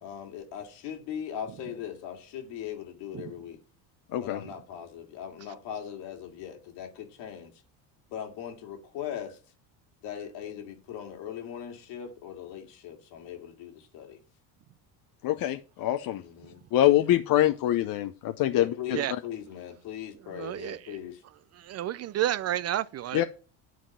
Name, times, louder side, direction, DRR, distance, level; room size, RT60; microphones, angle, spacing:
voice 1, 0.0-3.6 4.2-7.5 8.1-9.4 10.0-14.2 16.2-16.9 18.5-21.2, left 9 dB, 70° left, 2.2 m, -39 dB
voice 2, 15.2-16.2 16.7-19.2 23.1-23.2, left 13 dB, 50° left, 0.7 m, -25 dB
voice 3, 20.3-21.0 21.6-23.2, right 12 dB, 40° right, 0.4 m, -31 dB
10.0 x 3.7 x 7.1 m
supercardioid pair, 85°, 43 cm